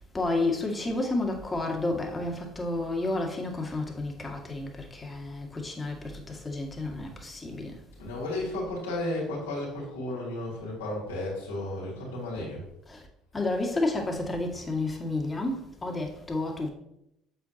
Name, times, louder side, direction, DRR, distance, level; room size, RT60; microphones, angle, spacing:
voice 1, 0.0-7.7 12.9-13.0 13.3-16.7, left 2 dB, 25° left, 2.0 m, -31 dB
voice 2, 7.9-12.6, left 1 dB, 80° left, 3.1 m, -33 dB
8.1 x 7.7 x 2.9 m
hypercardioid pair, 60°, 0 cm